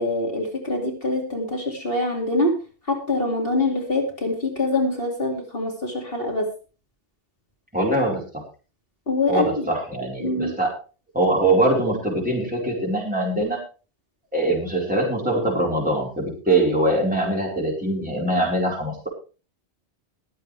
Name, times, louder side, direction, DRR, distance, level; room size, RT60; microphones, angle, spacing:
voice 1, 0.0-2.5 2.9-6.5 9.1-9.7 10.2-10.5, left 2 dB, 55° left, 0 dB, 2.9 m, -24 dB
voice 2, 7.7-8.4 9.3-10.7 11.1-13.6 14.3-19.1, right 1 dB, 5° right, -3 dB, 5.0 m, -23 dB
21.5 x 7.9 x 3.4 m, 0.35 s
omnidirectional pair, 1.1 m